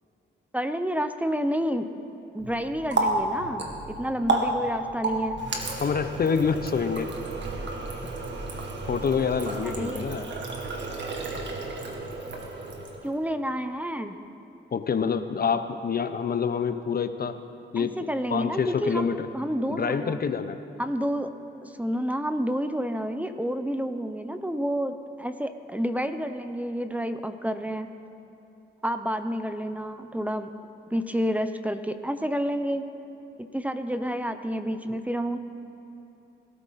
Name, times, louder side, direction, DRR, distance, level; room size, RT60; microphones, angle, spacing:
voice 1, 0.5-1.9 2.3-5.4 9.6-10.0 13.0-14.2 17.8-20.2 20.8-21.3 21.6-27.9 28.8-30.5 30.9-32.8 33.4-35.4, equal, 5° right, 9 dB, 0.9 m, -29 dB
Water tap faucet, 2.4-13.2, right 2 dB, 60° right, 2.2 m, -32 dB
voice 2, 5.8-7.1 8.0-8.1 8.9-10.3 14.7-17.4 17.7-18.0 18.3-19.3 19.7-20.6 34.9-35.0, left 6 dB, 50° left, 10 dB, 0.8 m, -27 dB
21.5 x 14.0 x 4.2 m, 2.9 s
cardioid pair, 65°, 21 cm